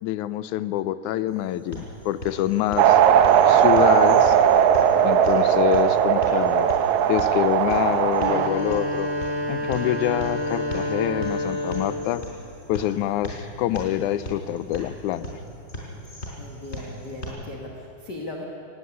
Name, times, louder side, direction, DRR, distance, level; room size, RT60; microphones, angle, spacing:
voice 1, 0.0-3.0 3.5-4.4 5.0-6.7 7.1-9.1 9.5-12.2 12.7-15.3, left 12 dB, 80° left, 14 dB, 2.0 m, -26 dB
sound 1, 1.3-17.3, equal, 20° left, 4.4 m, -38 dB
sound 2, 2.8-8.5, right 9 dB, 75° right, 2.2 m, -18 dB
voice 2, 7.7-8.0 16.4-18.4, left 2 dB, 40° left, 0 dB, 1.7 m, -38 dB
sound 3, 8.1-12.1, left 1 dB, 15° right, 4.9 m, -28 dB
17.5 x 17.0 x 9.7 m, 2.8 s
omnidirectional pair, 3.6 m